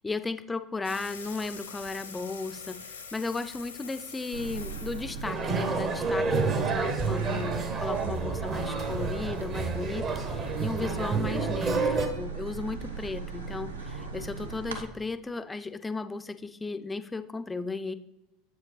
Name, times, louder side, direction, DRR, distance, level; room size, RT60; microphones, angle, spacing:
voice 1, 0.0-17.9, left 3 dB, 15° left, 11 dB, 0.4 m, -35 dB
sound 1, 0.8-6.2, left 5 dB, 75° left, 0.6 m, -45 dB
sound 2, 4.3-14.8, right 5 dB, 75° right, 0.7 m, -39 dB
sound 3, 5.2-12.1, right 4 dB, 35° right, 0.8 m, -29 dB
7.6 x 4.8 x 3.2 m, 0.95 s
figure-of-eight pair, 75°, 0 cm